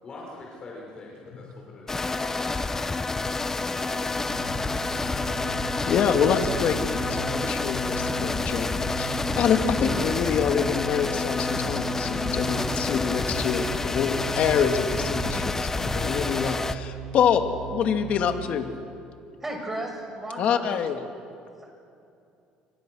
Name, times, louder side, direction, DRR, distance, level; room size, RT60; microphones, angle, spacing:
voice 1, 0.0-3.4 3.8-5.6, left 2 dB, 35° left, -3 dB, 6.1 m, -44 dB
sound 1, 1.9-16.7, left 3 dB, 15° left, 1.0 m, -28 dB
sound 2, 4.1-18.5, right 6 dB, 85° right, 7.2 m, -38 dB
voice 2, 5.9-17.4 17.7-18.7 20.4-21.0, left 7 dB, 55° left, 5 dB, 2.3 m, -26 dB
voice 3, 19.4-20.8 21.6-21.7, right 1 dB, 15° right, 2 dB, 6.6 m, -34 dB
30.0 x 25.0 x 6.5 m, 2.6 s
cardioid pair, 120°, 3 cm